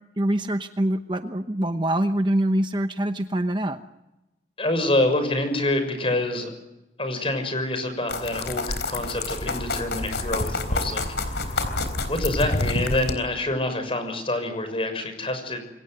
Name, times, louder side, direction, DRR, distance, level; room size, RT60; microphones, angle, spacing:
voice 1, 0.2-3.8, right 1 dB, 25° right, 8 dB, 0.9 m, -24 dB
voice 2, 4.6-6.5 7.0-11.6 12.1-15.6, left 1 dB, 30° left, 8 dB, 6.3 m, -26 dB
sound 1, 8.1-13.1, left 2 dB, 85° left, 3.9 m, -28 dB
28.0 x 23.5 x 7.9 m, 0.99 s
head